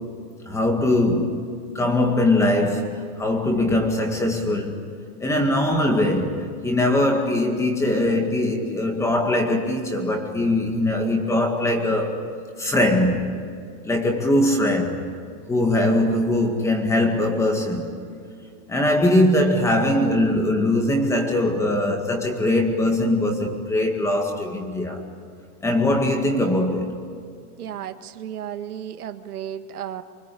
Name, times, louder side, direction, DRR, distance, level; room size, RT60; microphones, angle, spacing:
voice 1, 0.5-1.4 1.7-4.8 5.2-12.2 12.6-13.4 13.8-15.0 15.5-18.0 18.7-25.0 25.6-27.0, left 1 dB, 5° left, 2.0 m, -21 dB
voice 2, 27.6-30.0, right 10 dB, 75° right, 1.9 m, -34 dB
25.5 x 25.0 x 8.5 m
hypercardioid pair, 160°, 46 cm